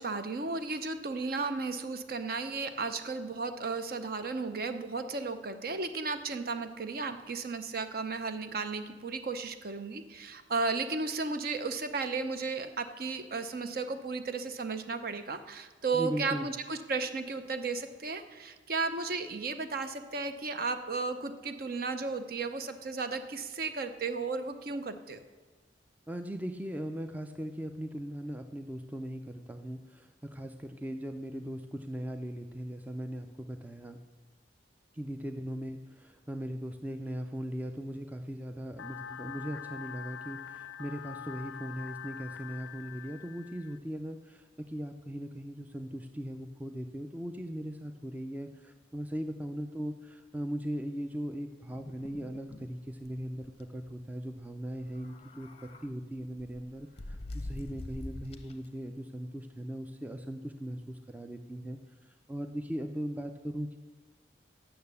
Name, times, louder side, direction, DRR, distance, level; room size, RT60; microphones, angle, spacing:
voice 1, 0.0-25.2, right 4 dB, 50° right, 9 dB, 0.6 m, -34 dB
voice 2, 15.9-16.5 26.1-34.0 34.9-61.8 62.3-63.8, equal, 10° right, 6 dB, 0.4 m, -39 dB
sound 1, 38.8-43.8, left 8 dB, 75° left, 0.4 m, -44 dB
sound 2, 51.7-52.7 53.0-53.1 53.4-53.6 54.8-55.9 56.4-58.7, left 1 dB, 35° left, 0.6 m, -44 dB
8.6 x 6.7 x 6.9 m, 1.4 s
head